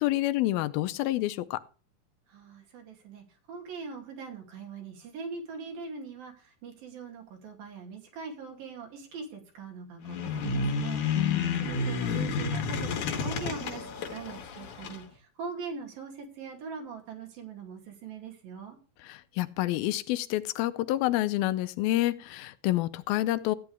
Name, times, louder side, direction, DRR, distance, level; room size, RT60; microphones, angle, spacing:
voice 1, 0.0-1.6 11.1-11.7 19.0-23.6, left 16 dB, 85° left, 2.6 m, -28 dB
voice 2, 2.3-11.0 11.6-18.8, right 5 dB, 75° right, 4.5 m, -42 dB
sound 1, 10.0-15.0, left 4 dB, 60° left, 2.6 m, -31 dB
14.5 x 10.0 x 3.4 m
omnidirectional pair, 4.2 m